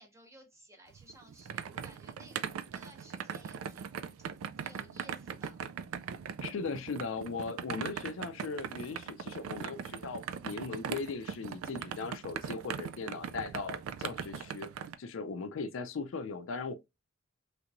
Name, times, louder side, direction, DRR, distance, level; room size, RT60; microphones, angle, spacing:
voice 1, 0.0-5.6, right 1 dB, 15° right, 0.8 m, -57 dB
sound 1, 0.9-14.9, right 7 dB, 80° right, 0.3 m, -40 dB
voice 2, 6.4-14.7 15.0-16.7, left 4 dB, 65° left, 0.4 m, -38 dB
3.3 x 2.9 x 2.4 m
head